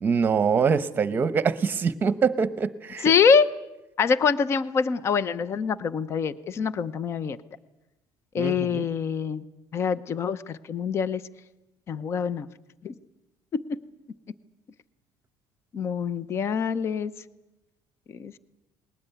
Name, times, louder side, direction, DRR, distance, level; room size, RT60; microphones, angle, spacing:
voice 1, 0.0-3.1 8.4-8.8, right 6 dB, 25° right, 13 dB, 1.0 m, -24 dB
voice 2, 3.0-3.5 4.0-7.4 8.3-9.4 9.7-11.2 11.9-12.5 12.8-12.9 13.5-13.8 15.7-17.1 18.1-18.3, left 6 dB, 35° left, 15 dB, 0.7 m, -25 dB
20.0 x 19.0 x 9.3 m, 1.0 s
cardioid pair, 150°, 8 cm